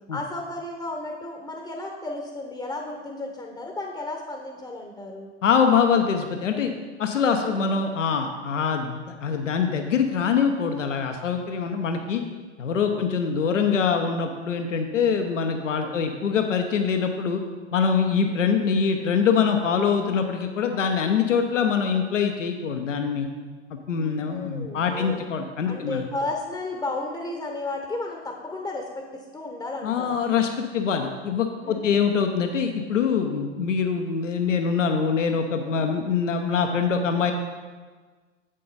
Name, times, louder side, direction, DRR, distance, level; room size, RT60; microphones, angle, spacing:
voice 1, 0.1-5.3 7.4-7.6 12.8-13.1 15.8-16.0 24.0-25.2 25.7-30.2 31.6-31.9 35.6-35.8, left 2 dB, 10° left, 2 dB, 0.8 m, -33 dB
voice 2, 5.4-6.7 7.0-12.2 12.6-17.4 17.7-23.3 23.9-26.0 29.8-37.3, left 6 dB, 85° left, 5 dB, 0.8 m, -24 dB
7.6 x 7.5 x 4.0 m, 1.4 s
hypercardioid pair, 95°, 36 cm